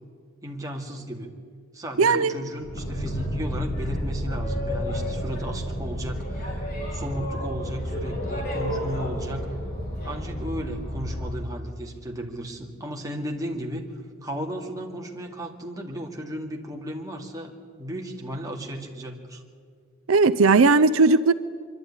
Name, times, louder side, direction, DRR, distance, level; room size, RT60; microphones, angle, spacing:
voice 1, 0.4-1.3 1.7-6.6 6.9-9.5 10.0-13.8 14.2-19.4, equal, 15° right, 1 dB, 2.2 m, -35 dB
voice 2, 2.0-2.3 20.1-21.3, right 4 dB, 75° right, 13 dB, 0.5 m, -17 dB
Boat Water vehicle, 2.6-11.4, equal, 50° left, 5.0 m, -30 dB
24.0 x 12.5 x 9.8 m, 2.1 s
head